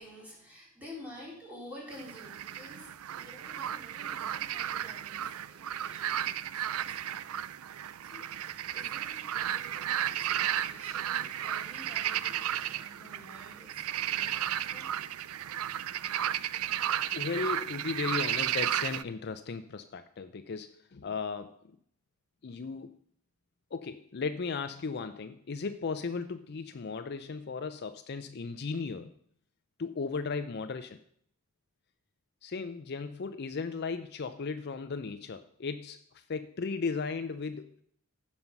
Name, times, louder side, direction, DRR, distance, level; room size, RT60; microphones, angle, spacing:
voice 1, 0.0-5.2 5.5-7.4 8.1-8.3 8.7-14.9, left 1 dB, 5° right, -4 dB, 3.7 m, -50 dB
sound 1, 1.9-19.0, right 11 dB, 75° right, 0.4 m, -34 dB
voice 2, 17.1-21.8 22.4-23.0 23.7-29.1 29.8-31.0 32.4-37.7, left 4 dB, 50° left, 10 dB, 0.5 m, -36 dB
15.0 x 5.5 x 5.9 m, 0.65 s
head